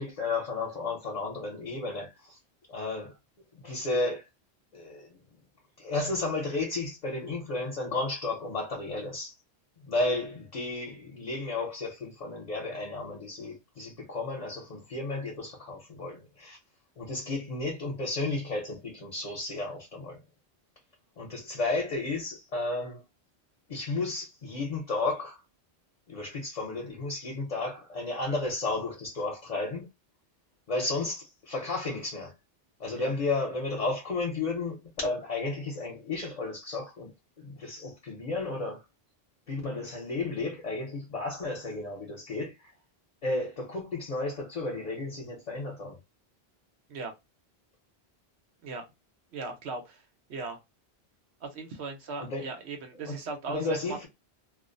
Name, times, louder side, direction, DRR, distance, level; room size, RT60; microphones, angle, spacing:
voice 1, 0.0-2.4 2.7-3.1 3.6-4.2 4.7-5.2 5.8-9.3 9.8-16.6 17.0-20.2 21.2-23.0 23.7-25.4 26.1-29.9 30.7-32.3 32.8-34.8 35.0-37.1 37.4-38.8 39.5-42.7 43.2-46.0 52.2-52.5 53.0-53.2 53.5-54.1, left 3 dB, 45° left, 0.8 m, -33 dB
voice 2, 49.3-50.0 50.3-50.6 51.4-54.1, right 3 dB, 90° right, 1.0 m, -38 dB
2.5 x 2.0 x 2.5 m
omnidirectional pair, 1.1 m